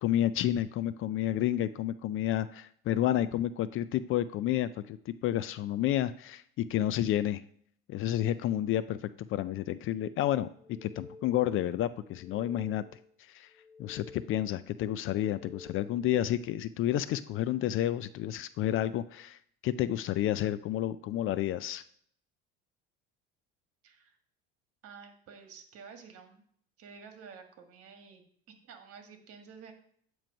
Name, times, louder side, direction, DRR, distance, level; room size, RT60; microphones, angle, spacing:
voice 1, 0.0-7.4 7.9-10.5 10.8-12.8 13.2-13.5 13.8-21.8, left 12 dB, 45° left, 15 dB, 0.4 m, -30 dB
sound 1, 10.5-11.6 12.0-13.1 13.5-14.6 15.0-16.1, left 3 dB, 10° left, 1.3 m, -52 dB
voice 2, 23.8-24.1 24.8-26.4 26.8-29.7, right 6 dB, 50° right, 5 dB, 1.5 m, -51 dB
8.9 x 3.1 x 5.1 m, 0.62 s
supercardioid pair, 90°, 29 cm